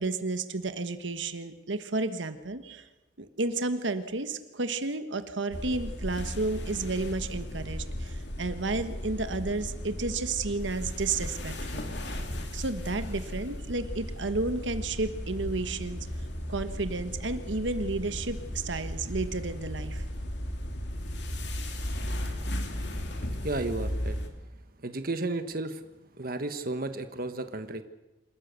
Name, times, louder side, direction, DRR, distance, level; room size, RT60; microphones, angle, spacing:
voice 1, 0.0-2.9 3.2-12.2 12.5-16.1 16.5-20.0, right 3 dB, 85° right, 10 dB, 1.3 m, -32 dB
sound 1, 5.5-24.3, equal, 65° left, 2.7 m, -36 dB
voice 2, 23.4-24.2 24.8-25.8 26.2-27.8, right 2 dB, 50° right, 9 dB, 1.2 m, -33 dB
27.0 x 13.5 x 8.2 m, 1.1 s
head